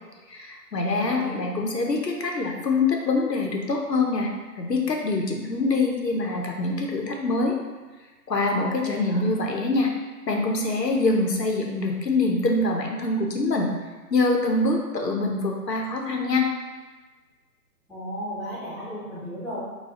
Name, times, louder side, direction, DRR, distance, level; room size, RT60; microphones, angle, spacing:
voice 1, 0.3-4.3 4.6-7.6 8.3-9.9 10.3-13.7 14.1-16.5, left 2 dB, 90° left, 1 dB, 0.7 m, -24 dB
voice 2, 1.0-1.4 8.8-9.2 17.9-19.6, equal, ahead, -12 dB, 0.3 m, -35 dB
4.0 x 2.3 x 2.8 m, 1.3 s
figure-of-eight pair, 135°, 48 cm